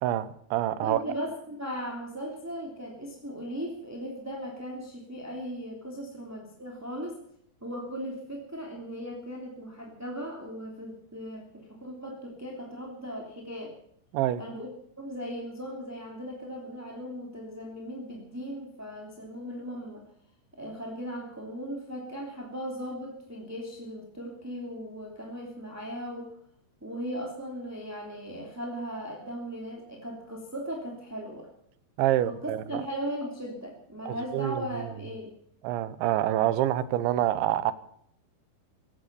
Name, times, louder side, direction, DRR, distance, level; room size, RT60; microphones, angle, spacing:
voice 1, 0.0-1.0 14.1-14.4 32.0-32.8 34.1-34.9 35.6-37.7, right 13 dB, 85° right, 3.2 m, -27 dB
voice 2, 0.8-7.2 7.6-13.8 14.4-14.7 15.0-20.0 20.6-26.3 26.8-31.5 32.2-35.3, equal, 5° right, 1.8 m, -38 dB
16.5 x 12.0 x 6.8 m
omnidirectional pair, 5.2 m